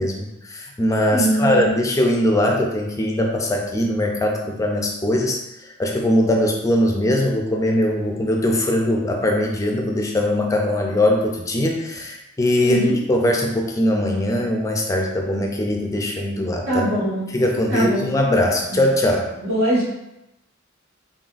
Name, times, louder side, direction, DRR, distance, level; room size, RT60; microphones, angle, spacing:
voice 1, 0.0-5.4 5.8-16.9 17.3-19.3, left 1 dB, 15° left, 1 dB, 0.4 m, -21 dB
voice 2, 1.1-1.6 12.6-12.9 16.7-17.3 17.7-18.1 18.7-18.8 19.4-19.8, right 1 dB, 85° right, -6 dB, 1.4 m, -21 dB
3.9 x 3.6 x 2.4 m, 0.91 s
head